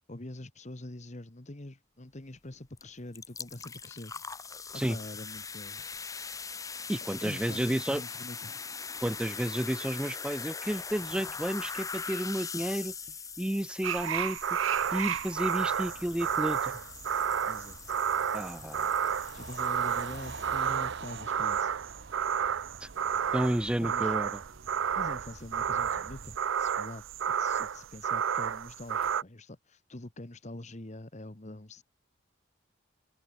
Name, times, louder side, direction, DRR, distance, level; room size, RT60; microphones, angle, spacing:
voice 1, 0.1-4.1 4.7-5.8 7.2-8.7 17.5-17.8 19.3-21.7 23.8-24.2 25.0-27.0 27.4-31.8, left 1 dB, 35° left, 1.4 m, -44 dB
sound 1, 2.8-2.9 3.1-20.9, left 5 dB, 20° left, 0.9 m, -42 dB
voice 2, 6.9-8.0 9.0-12.9 13.4-14.4 14.9-16.7 18.3-18.9 22.8-22.9 23.3-24.4, right 1 dB, 5° right, 0.3 m, -31 dB
sound 2, 13.8-29.2, right 8 dB, 90° right, 0.5 m, -31 dB
sound 3, 14.7-26.4, right 4 dB, 60° right, 1.2 m, -48 dB
head